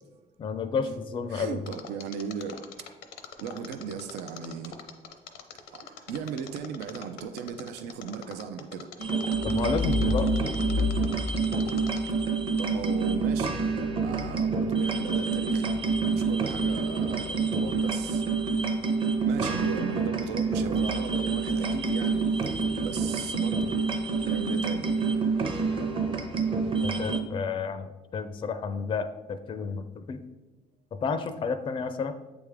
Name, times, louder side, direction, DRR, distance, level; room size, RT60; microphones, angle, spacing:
voice 1, 0.4-1.6 9.4-10.3 26.8-30.2 30.9-32.1, left 5 dB, 30° left, 10 dB, 0.4 m, -31 dB
voice 2, 1.3-2.6 3.4-4.8 5.7-8.9 12.6-13.5 14.0-15.7 16.0-18.2 19.3-22.2 22.8-23.7 24.2-24.9, right 7 dB, 90° right, 9 dB, 0.5 m, -36 dB
Mechanisms, 1.7-12.2 12.6-12.7, left 8 dB, 85° left, 0.6 m, -44 dB
sound 1, 9.0-27.2, right 4 dB, 30° right, 0.7 m, -27 dB
8.1 x 3.5 x 3.4 m, 1.1 s
cardioid pair, 110°, 17 cm